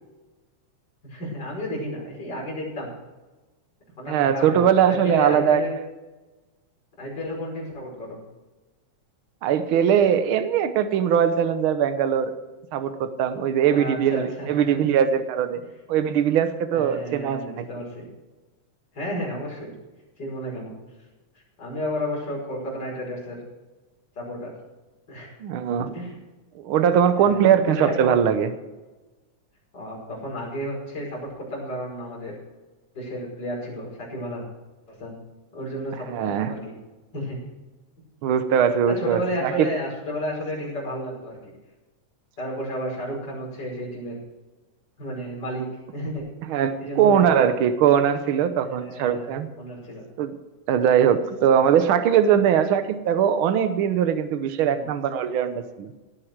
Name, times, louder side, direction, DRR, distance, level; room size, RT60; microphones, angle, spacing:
voice 1, 1.0-2.9 4.0-5.7 7.0-8.2 13.6-14.8 15.5-15.6 16.7-18.0 18.9-19.7 20.2-20.7 21.6-23.4 24.2-24.5 25.1-25.3 25.9-26.2 26.9-28.1 29.7-32.4 32.9-34.4 34.9-35.2 35.5-36.7 37.1-37.4 38.9-41.5 42.4-44.2 45.0-45.6 45.9-47.4 48.6-49.3 49.6-50.0 54.6-54.9, equal, 35° left, -4 dB, 6.0 m, -32 dB
voice 2, 4.1-5.6 9.4-12.3 12.7-15.6 15.9-17.6 25.4-25.9 26.6-28.5 36.1-36.5 38.2-39.7 46.5-49.5 50.2-50.3 50.7-55.9, right 8 dB, 65° right, 10 dB, 1.3 m, -21 dB
17.5 x 10.0 x 4.7 m, 1.2 s
omnidirectional pair, 3.4 m